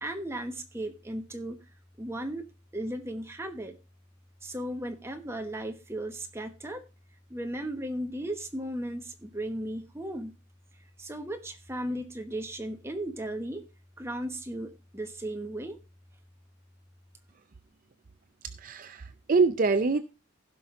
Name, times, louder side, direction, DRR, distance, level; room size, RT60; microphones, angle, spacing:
voice 1, 0.0-1.6 2.0-2.5 2.7-3.8 4.4-6.8 7.3-10.3 11.0-13.7 14.0-15.8, right 1 dB, 10° right, 5 dB, 1.0 m, -36 dB
voice 2, 18.4-20.0, right 4 dB, 40° right, 11 dB, 0.4 m, -25 dB
15.5 x 5.8 x 3.7 m, 0.29 s
head